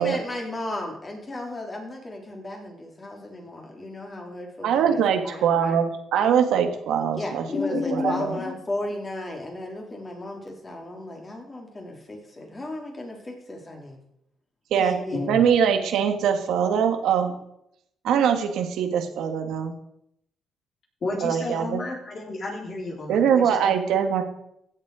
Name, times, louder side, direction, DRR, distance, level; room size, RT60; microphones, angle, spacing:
voice 1, 0.0-5.8 7.1-14.0 14.8-15.3, left 1 dB, 25° left, 1 dB, 3.7 m, -35 dB
voice 2, 4.6-7.4 7.7-8.4 14.7-14.9 15.3-17.3 18.0-19.7 21.2-21.8 23.1-24.2, right 8 dB, 80° right, 6 dB, 1.6 m, -22 dB
voice 3, 7.5-8.5 15.1-15.5 21.0-23.9, left 3 dB, 50° left, -1 dB, 4.1 m, -31 dB
15.5 x 7.6 x 4.9 m, 0.76 s
cardioid pair, 90°, 0 cm